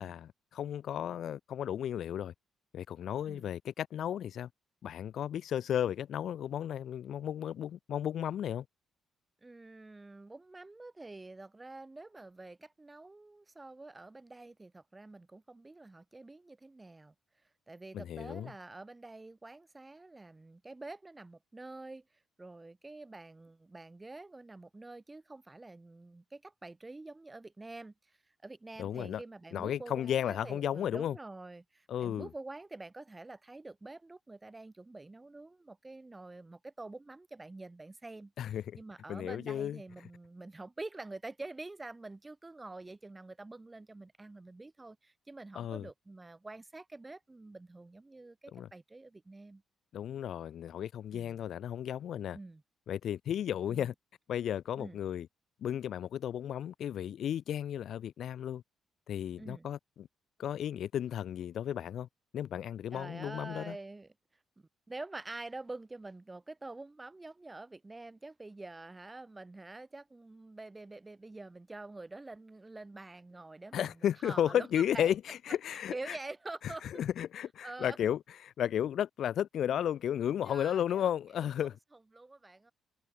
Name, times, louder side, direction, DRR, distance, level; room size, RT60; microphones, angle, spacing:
voice 1, 0.0-2.3 2.7-4.5 4.8-8.6 17.9-18.5 28.8-29.2 29.5-31.2 31.9-32.3 38.4-38.8 39.1-39.8 45.6-45.9 48.5-48.7 49.9-52.4 52.9-53.9 54.3-55.3 55.6-58.6 59.1-60.1 60.4-62.1 62.3-63.8 73.7-76.2 76.8-81.8, left 10 dB, 65° left, 0.3 m, -34 dB
voice 2, 9.4-17.1 17.7-22.0 22.4-27.9 28.4-49.6 51.1-51.5 52.3-52.6 53.7-53.9 54.8-55.0 59.4-59.7 62.9-64.1 64.6-75.1 75.7-76.8 77.6-78.0 80.5-81.7 82.1-82.7, right 2 dB, 20° right, 0.5 m, -47 dB
cardioid pair, 90°, 0 cm